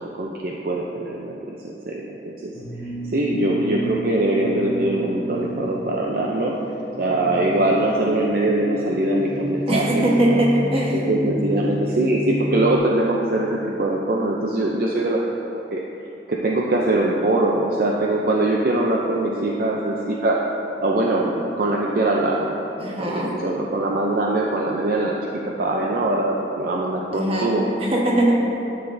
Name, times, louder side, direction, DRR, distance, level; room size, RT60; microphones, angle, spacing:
voice 1, 0.0-2.5 3.0-6.6 7.0-10.4 10.9-15.2 15.5-15.8 16.3-20.4 20.8-22.6 23.0-27.6, right 2 dB, 55° right, -2 dB, 0.5 m, -22 dB
sound 1, 2.5-12.8, equal, 25° left, 1.3 m, -30 dB
voice 2, 9.7-11.0 22.8-23.3 27.1-28.4, right 1 dB, 35° right, -3 dB, 1.2 m, -21 dB
9.9 x 7.9 x 2.6 m, 3.0 s
head